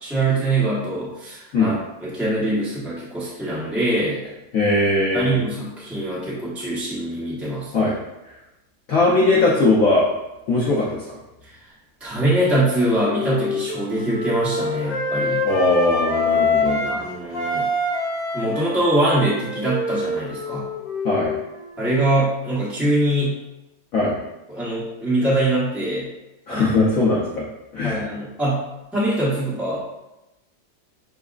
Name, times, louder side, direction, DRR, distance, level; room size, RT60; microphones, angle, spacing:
voice 1, 0.0-1.7 2.0-4.2 5.1-7.9 11.4-11.6 12.0-15.4 16.9-17.7 18.3-20.7 21.8-23.4 24.5-26.1 26.5-26.7 27.8-28.7 28.9-30.0, right 1 dB, ahead, -8 dB, 0.4 m, -23 dB
voice 2, 4.5-5.4 7.7-8.0 8.9-10.1 10.5-11.2 15.4-17.0 21.0-21.3 23.9-24.2 26.5-27.4 27.7-28.0, left 2 dB, 80° left, -6 dB, 0.7 m, -19 dB
Wind instrument woodwind instrument, 12.5-17.0 17.3-21.8, left 2 dB, 35° left, 0.9 m, -25 dB
7.0 x 2.3 x 2.4 m, 0.98 s
omnidirectional pair, 2.3 m